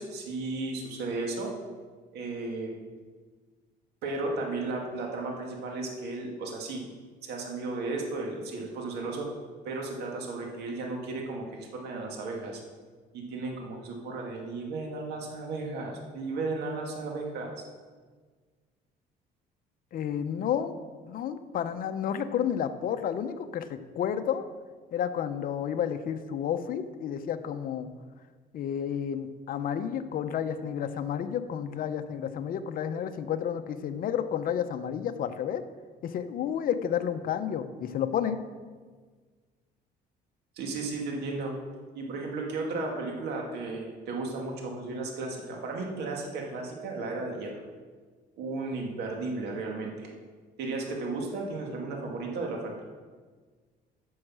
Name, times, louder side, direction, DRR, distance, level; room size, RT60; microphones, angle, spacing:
voice 1, 0.0-1.5 2.1-2.7 4.0-6.8 7.2-9.3 9.6-11.4 11.7-12.6 13.1-17.5 40.6-41.5 41.9-47.6 48.4-50.1 50.6-52.8, right 3 dB, 75° right, 0 dB, 2.2 m, -34 dB
voice 2, 19.9-20.8 21.0-24.4 24.9-27.9 28.5-35.6 36.0-38.4, left 8 dB, 55° left, 9 dB, 0.8 m, -31 dB
9.5 x 6.5 x 6.2 m, 1.5 s
cardioid pair, 110°, 17 cm